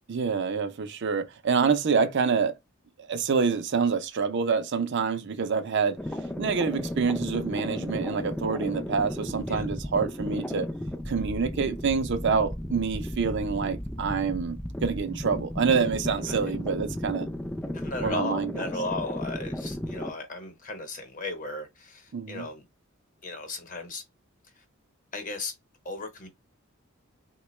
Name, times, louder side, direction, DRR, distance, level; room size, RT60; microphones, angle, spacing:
voice 1, 0.1-2.5 3.1-6.0 6.4-10.7 11.1-17.3 18.0-18.6 22.1-22.5, right 5 dB, 60° right, 0.5 m, -27 dB
sound 1, 6.0-20.1, left 1 dB, 5° left, 0.4 m, -34 dB
voice 2, 17.7-22.6 23.2-24.0 24.6-24.7 25.1-25.5 25.8-26.3, left 2 dB, 40° left, 1.0 m, -36 dB
3.7 x 2.2 x 3.0 m
head